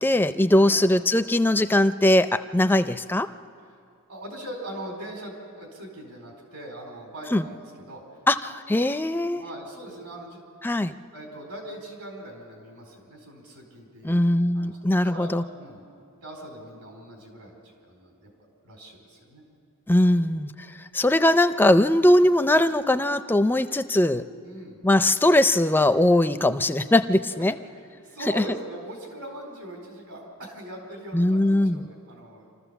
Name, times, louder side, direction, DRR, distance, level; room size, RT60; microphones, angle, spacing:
voice 1, 0.0-3.3 7.3-7.5 8.3-9.4 10.6-10.9 14.0-15.4 19.9-20.5 20.9-24.2 24.8-27.6 28.4-28.5 31.1-31.9, left 1 dB, 10° left, 10 dB, 0.4 m, -20 dB
voice 2, 4.1-8.0 9.4-10.4 10.8-15.8 16.2-18.3 18.6-19.4 24.4-24.8 27.3-27.5 28.0-32.5, right 1 dB, 75° right, 1 dB, 4.3 m, -41 dB
27.0 x 14.0 x 7.0 m, 2.4 s
head